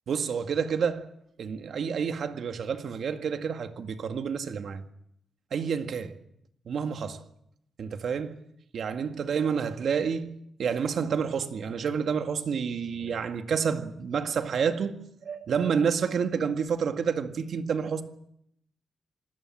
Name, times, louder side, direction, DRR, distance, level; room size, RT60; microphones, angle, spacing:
voice 1, 0.1-1.1 1.4-4.8 5.5-6.2 6.7-7.2 7.8-8.4 8.7-18.0, right 6 dB, 55° right, 1.9 m, -29 dB
27.0 x 19.5 x 7.5 m
wide cardioid pair, 170°, 0 cm